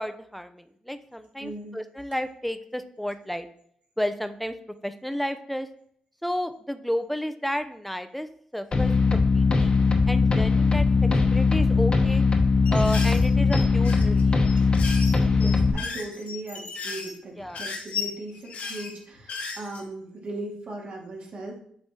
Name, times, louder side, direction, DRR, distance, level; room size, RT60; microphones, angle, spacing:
voice 1, 0.0-3.5 4.0-4.5 4.8-5.7 6.2-9.7 10.1-12.2 12.7-14.4 17.4-17.6, equal, 5° left, 10 dB, 0.7 m, -32 dB
voice 2, 1.4-1.8 15.3-21.6, right 2 dB, 55° right, -2 dB, 2.2 m, -38 dB
sound 1, 8.7-15.7, left 4 dB, 40° left, 1.1 m, -20 dB
sound 2, 12.7-19.8, left 5 dB, 65° left, 1.3 m, -35 dB
7.9 x 3.3 x 4.3 m, 0.65 s
supercardioid pair, 55°, 3 cm